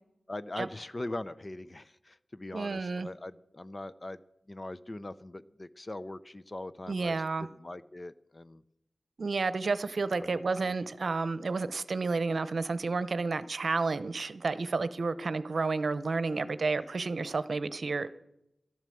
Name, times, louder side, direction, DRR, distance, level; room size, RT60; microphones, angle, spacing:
voice 1, 0.3-4.2 4.5-8.6 10.2-10.7, left 2 dB, 30° left, 14 dB, 0.6 m, -41 dB
voice 2, 2.5-3.1 6.9-7.5 9.2-18.1, right 4 dB, 65° right, 13 dB, 0.8 m, -31 dB
13.0 x 12.0 x 7.7 m, 0.85 s
wide cardioid pair, 75°, 0 cm